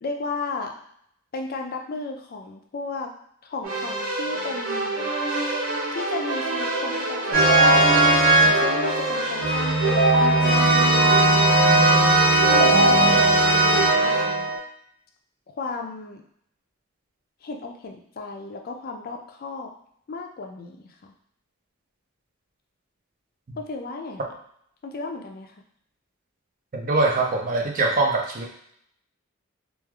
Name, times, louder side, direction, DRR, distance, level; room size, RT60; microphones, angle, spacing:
voice 1, 0.0-0.7 1.3-3.1 3.4-5.1 5.9-8.1 8.4-12.0 12.5-13.5 14.0-14.5 15.5-16.2 17.4-19.7 20.1-21.1 23.6-24.2 24.8-25.5, left 3 dB, 45° left, 3 dB, 0.4 m, -34 dB
Keyboard (musical), 3.6-14.2, right 2 dB, 85° right, 0.7 m, -24 dB
sound 1, 7.3-14.6, right 2 dB, 20° left, 1.0 m, -19 dB
voice 2, 26.7-28.5, right 3 dB, 40° right, 0 dB, 0.4 m, -23 dB
3.1 x 2.3 x 2.3 m, 0.68 s
head